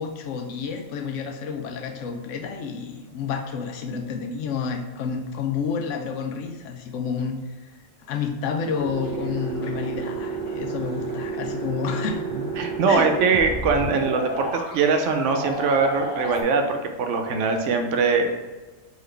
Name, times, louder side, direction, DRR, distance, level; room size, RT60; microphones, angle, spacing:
voice 1, 0.0-7.5 8.1-12.2 12.9-13.1, left 6 dB, 80° left, 5 dB, 0.9 m, -30 dB
sound 1, 8.8-16.4, right 3 dB, 50° left, 1.6 m, -31 dB
voice 2, 12.3-18.4, right 4 dB, 75° right, 4 dB, 0.9 m, -22 dB
3.9 x 2.9 x 3.2 m, 1.2 s
omnidirectional pair, 1.3 m